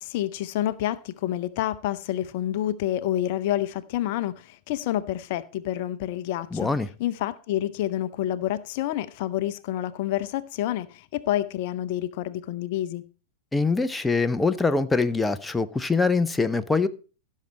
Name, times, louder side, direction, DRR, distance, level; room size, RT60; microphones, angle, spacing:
voice 1, 0.0-6.7 7.0-13.0, left 13 dB, 50° left, 0.6 m, -28 dB
voice 2, 6.5-6.9 13.5-16.9, left 4 dB, 10° left, 0.6 m, -23 dB
15.5 x 6.5 x 4.2 m
figure-of-eight pair, 95°, 0 cm